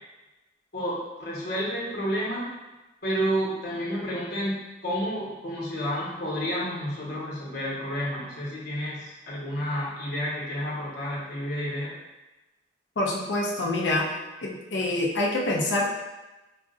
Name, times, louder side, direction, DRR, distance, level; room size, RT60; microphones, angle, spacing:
voice 1, 0.7-2.5 3.0-4.6 4.8-12.0, equal, 60° left, -6 dB, 1.2 m, -30 dB
voice 2, 13.0-14.1 14.4-15.8, left 2 dB, 80° left, -1 dB, 0.7 m, -26 dB
5.0 x 2.5 x 2.5 m, 1.1 s
head